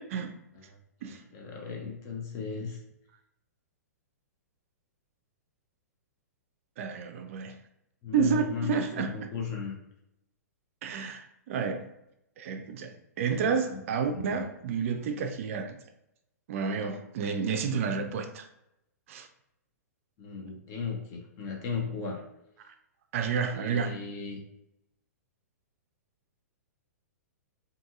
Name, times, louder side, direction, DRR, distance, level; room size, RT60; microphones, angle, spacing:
voice 1, 0.5-2.8 8.0-9.8 13.2-13.8 14.1-14.4 20.2-22.2 23.5-24.4, left 5 dB, 35° left, 0 dB, 0.7 m, -36 dB
voice 2, 6.8-7.6 8.1-9.1 10.8-11.9 12.4-15.8 16.5-18.5 19.1-19.3 22.7-22.8 23.1-23.9, right 6 dB, 55° right, 6 dB, 0.4 m, -30 dB
2.6 x 2.6 x 2.4 m, 0.82 s
hypercardioid pair, 115°, 9 cm